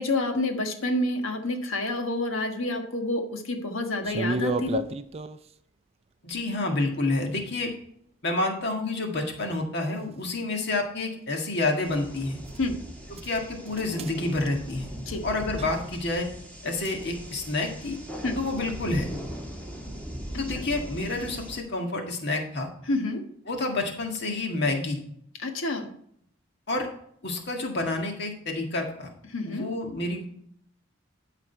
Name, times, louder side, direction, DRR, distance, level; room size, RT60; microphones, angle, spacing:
voice 1, 0.0-4.8 12.6-12.7 15.1-15.2 18.2-18.4 20.5-20.6 22.9-23.2 25.4-25.9 29.3-29.7, left 2 dB, 80° left, 5 dB, 1.4 m, -28 dB
sound 1, 4.0-5.5 9.4-9.5 10.3-10.4 12.5-12.6 13.2-13.4 13.7-14.1 14.4-14.6 15.6-16.0 16.8-17.0, right 3 dB, 30° right, 0.4 m, -32 dB
voice 2, 6.2-7.7 8.2-12.4 13.2-14.9 15.2-16.3 16.6-18.0 18.4-19.1 20.4-22.7 23.5-25.0 26.7-26.9 27.2-29.1 29.5-30.2, left 2 dB, 55° left, 2 dB, 1.8 m, -29 dB
sound 2, 11.8-21.6, equal, 10° left, 1.8 m, -39 dB
12.5 x 5.0 x 4.5 m, 0.67 s
head